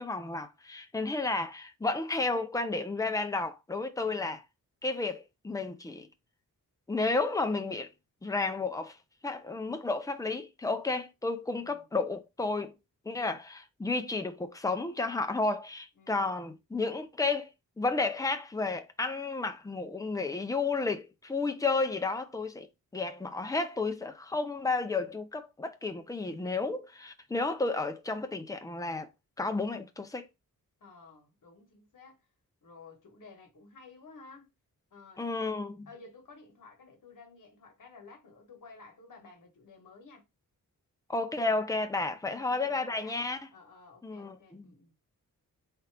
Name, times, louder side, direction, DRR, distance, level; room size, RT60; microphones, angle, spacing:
voice 1, 0.0-4.4 4.8-6.1 6.9-7.9 8.2-9.0 9.2-12.8 13.0-17.5 17.8-22.7 22.9-29.1 29.4-30.3 35.2-35.9 41.1-43.4 44.0-44.7, left 3 dB, 10° left, 0.5 m, -32 dB
voice 2, 4.0-4.3 11.6-11.9 15.9-16.2 30.8-32.3 32.6-34.5 34.9-35.5 35.9-40.2 42.1-43.2 43.5-44.9, left 3 dB, 65° left, 1.4 m, -53 dB
3.7 x 2.9 x 3.3 m
wide cardioid pair, 130°, 34 cm